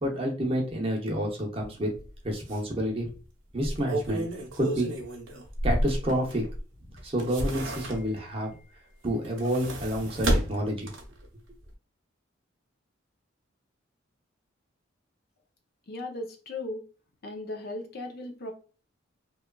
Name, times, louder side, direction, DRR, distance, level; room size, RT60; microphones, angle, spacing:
voice 1, 0.0-1.9 2.2-3.1 3.5-4.3 4.6-4.9 5.6-6.4 7.0-8.5 9.0-10.9, equal, 30° right, 0 dB, 0.6 m, -29 dB
sound 1, 2.0-2.1 2.5-2.6 3.5-6.6 7.0-8.3 9.1-11.3 11.6-11.7, right 1 dB, 75° right, 0.7 m, -31 dB
voice 2, 15.9-16.8 17.2-18.5, left 2 dB, 50° left, 4 dB, 0.5 m, -37 dB
2.9 x 2.3 x 2.2 m, 0.37 s
head